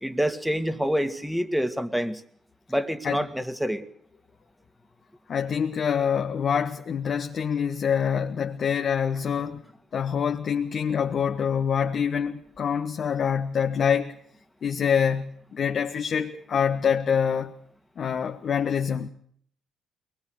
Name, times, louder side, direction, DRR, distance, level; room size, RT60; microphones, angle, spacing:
voice 1, 0.0-2.2 2.7-3.8, equal, ahead, 2.4 m, -27 dB
voice 2, 5.3-9.6 9.9-14.1 14.6-17.5 18.0-19.1, left 7 dB, 55° left, 1.5 m, -25 dB
22.5 x 21.0 x 6.6 m
hypercardioid pair, 55°, 0 cm